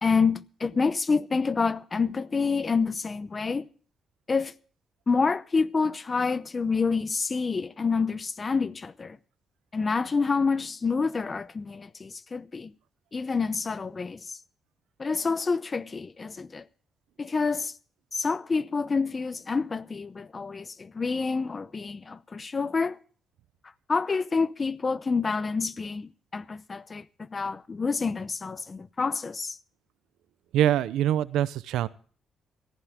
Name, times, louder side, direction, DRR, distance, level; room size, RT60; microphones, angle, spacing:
voice 1, 0.0-3.7 4.3-4.5 5.1-9.2 9.7-12.7 13.1-14.2 15.0-16.6 17.2-17.7 18.1-23.0 23.9-29.6, left 4 dB, 30° left, 0.7 m, -28 dB
voice 2, 30.5-31.9, right 12 dB, 85° right, 0.7 m, -24 dB
18.0 x 15.0 x 3.6 m
cardioid pair, 90°, 0 cm